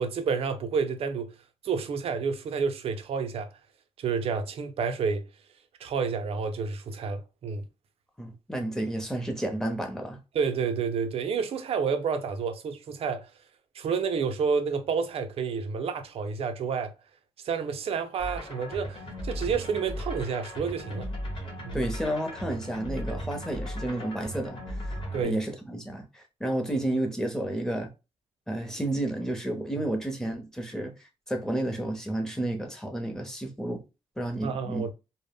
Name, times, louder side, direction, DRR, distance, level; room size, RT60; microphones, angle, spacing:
voice 1, 0.0-1.3 1.6-3.5 4.0-5.3 5.8-7.6 10.3-13.3 13.7-16.9 17.4-21.1 21.6-21.8 25.1-25.4 29.8-29.9 34.4-34.9, right 5 dB, 60° right, 0.5 m, -29 dB
voice 2, 8.2-10.2 21.7-24.9 25.2-27.9 28.5-30.9 31.3-33.8 34.2-34.8, right 1 dB, 5° left, 0.7 m, -31 dB
sound 1, 18.2-25.2, equal, 50° left, 0.9 m, -36 dB
2.0 x 2.0 x 3.4 m
cardioid pair, 100°, 11 cm